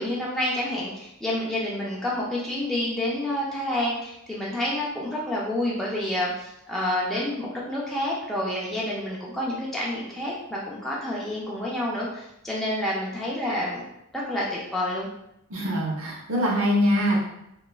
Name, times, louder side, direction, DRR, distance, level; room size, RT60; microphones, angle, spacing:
voice 1, 0.0-13.9 14.1-15.1, left 1 dB, ahead, -6 dB, 0.3 m, -28 dB
voice 2, 15.5-17.2, equal, 65° right, -3 dB, 0.7 m, -23 dB
2.9 x 2.3 x 2.3 m, 0.83 s
head